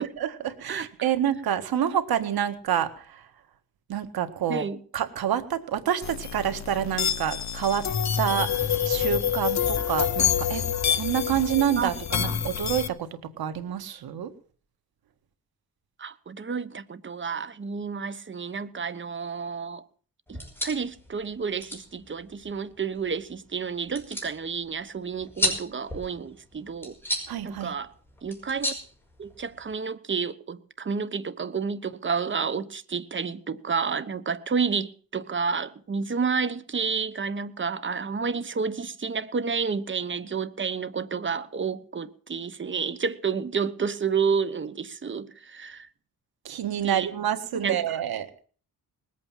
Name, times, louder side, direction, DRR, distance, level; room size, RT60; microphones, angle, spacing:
voice 1, 0.0-3.2 3.9-4.6 4.9-7.9 8.2-8.5 8.8-14.3 27.3-27.8 46.5-48.3, right 10 dB, 85° right, 1.8 m, -28 dB
voice 2, 4.5-4.8 11.8-12.4 16.0-19.8 20.3-27.0 27.4-27.9 28.2-28.7 29.2-45.9 46.8-47.1 47.5-48.0, right 5 dB, 35° right, 1.1 m, -30 dB
sound 1, 6.0-12.9, left 8 dB, 50° left, 1.0 m, -27 dB
sound 2, 20.3-29.7, left 1 dB, 5° left, 5.5 m, -35 dB
20.0 x 8.5 x 7.4 m
cardioid pair, 100°, 36 cm